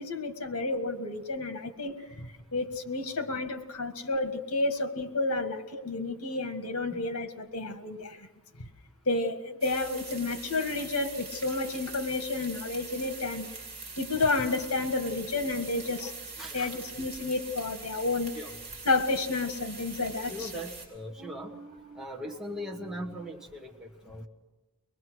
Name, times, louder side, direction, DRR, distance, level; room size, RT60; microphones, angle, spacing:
voice 1, 0.0-8.3 9.1-13.5 14.0-16.1 16.5-18.4 18.9-20.5, left 3 dB, 80° left, 7 dB, 1.7 m, -31 dB
sound 1, 9.6-20.9, right 4 dB, 30° right, 5.6 m, -43 dB
voice 2, 16.4-16.8 18.3-18.5 20.3-24.3, equal, 5° right, -2 dB, 1.3 m, -40 dB
23.5 x 20.5 x 6.3 m, 1.2 s
head